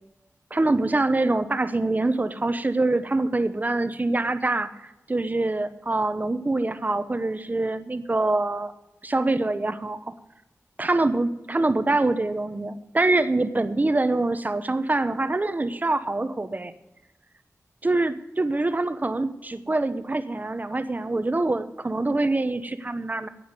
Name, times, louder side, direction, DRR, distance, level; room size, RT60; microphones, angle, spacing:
voice 1, 0.5-4.7 5.1-8.7 9.0-10.1 10.8-16.7 17.8-23.3, right 2 dB, 30° right, 12 dB, 0.9 m, -25 dB
10.5 x 8.7 x 9.7 m, 0.97 s
wide cardioid pair, 85°, 5 cm